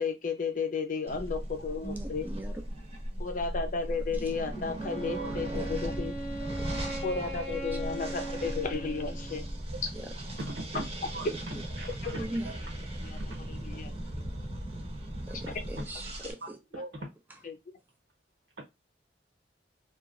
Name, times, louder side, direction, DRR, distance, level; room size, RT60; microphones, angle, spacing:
voice 1, 0.0-2.3 3.2-6.2 7.0-9.5 12.0-12.2 13.0-13.2 13.5-13.9 14.2-14.3 17.0-17.1 17.4-17.6, left 5 dB, 50° left, 0.6 m, -33 dB
sound 1, 1.1-16.3, right 1 dB, 35° right, 0.8 m, -38 dB
voice 2, 1.8-2.6 5.5-5.7 6.5-6.6 9.9-10.1 11.5-11.6 12.2-12.5 15.3-16.6 17.3-17.4, right 1 dB, 10° right, 0.4 m, -39 dB
Wind instrument woodwind instrument, 4.8-9.6, right 1 dB, 5° left, 1.0 m, -39 dB
voice 3, 5.1-5.5 9.7-9.8 10.4-10.8 11.1-11.2 11.8-12.5 13.1-13.2 16.4-16.9 18.6-18.7, right 2 dB, 90° right, 1.2 m, -40 dB
2.9 x 2.4 x 2.4 m
head